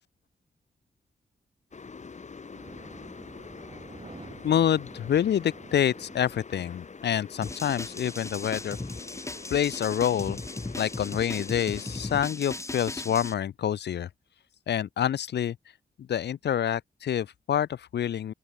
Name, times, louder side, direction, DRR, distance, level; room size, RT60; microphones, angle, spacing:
sound 1, 1.7-12.2, left 5 dB, 40° left, 1.8 m, -45 dB
sound 2, 2.5-7.0, right 3 dB, 30° right, 2.4 m, -49 dB
voice 1, 4.4-8.8 9.5-10.4 10.8-14.1 14.7-15.6 16.0-18.3, left 9 dB, 75° left, 1.3 m, -27 dB
sound 3, 7.4-13.3, left 2 dB, 15° left, 0.8 m, -37 dB
open air
cardioid pair, 55°, 18 cm